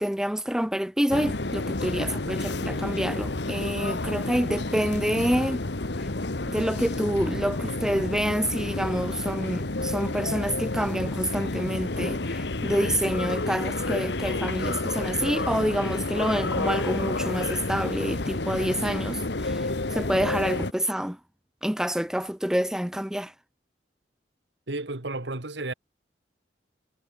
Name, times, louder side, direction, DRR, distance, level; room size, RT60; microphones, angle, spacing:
voice 1, 0.0-5.6 6.5-21.2 21.6-23.3, equal, 5° right, 0.6 m, -27 dB
sound 1, 1.1-20.7, left 2 dB, 70° left, 1.4 m, -30 dB
voice 2, 24.7-25.7, right 2 dB, 75° right, 2.0 m, -32 dB
head